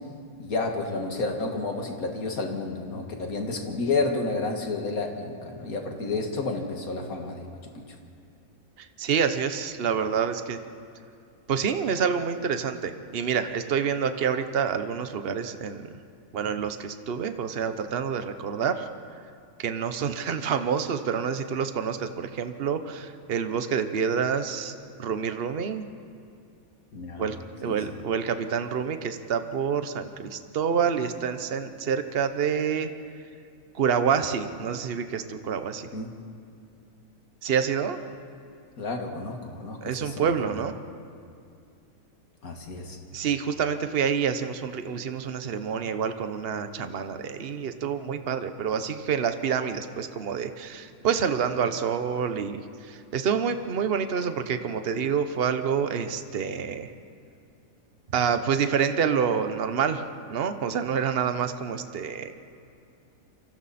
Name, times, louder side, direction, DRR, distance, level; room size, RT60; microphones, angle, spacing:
voice 1, 0.4-7.5 26.9-27.3 27.6-28.0 35.9-36.1 38.8-40.3 42.4-43.0, left 3 dB, 80° left, 2 dB, 2.4 m, -30 dB
voice 2, 8.8-10.6 11.5-15.9 16.3-18.9 19.6-25.9 27.2-27.4 27.6-32.9 33.7-35.9 37.4-38.0 39.8-40.8 43.1-56.9 58.1-62.3, right 7 dB, 45° right, 9 dB, 1.1 m, -27 dB
29.0 x 24.5 x 4.3 m, 2.4 s
omnidirectional pair, 1.5 m